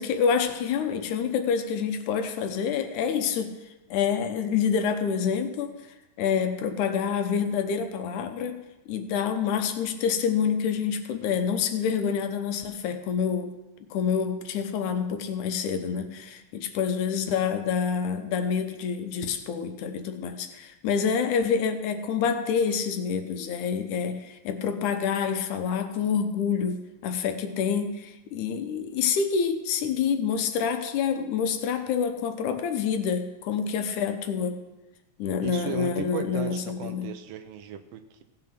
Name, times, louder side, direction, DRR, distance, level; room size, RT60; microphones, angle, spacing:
voice 1, 0.0-3.5 3.9-5.7 6.2-13.6 13.9-34.6 35.2-37.1, left 6 dB, 85° left, 7 dB, 2.4 m, -27 dB
voice 2, 35.4-38.2, right 9 dB, 70° right, 7 dB, 1.8 m, -37 dB
16.5 x 5.9 x 5.9 m, 1.0 s
omnidirectional pair, 3.4 m